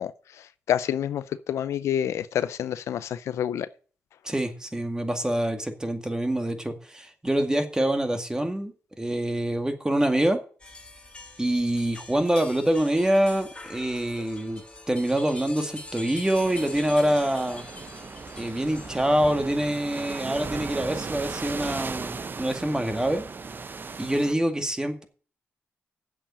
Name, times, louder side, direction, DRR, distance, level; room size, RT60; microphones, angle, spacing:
voice 1, 0.0-3.7, left 10 dB, 90° left, 0.5 m, -28 dB
voice 2, 4.2-10.4 11.4-17.7 18.4-23.3 24.0-25.0, right 1 dB, 15° right, 2.1 m, -25 dB
sound 1, 10.6-19.1, left 2 dB, 20° left, 2.7 m, -44 dB
sound 2, 16.3-24.3, right 4 dB, 45° right, 0.9 m, -37 dB
7.8 x 7.3 x 8.5 m
cardioid pair, 65°, 5 cm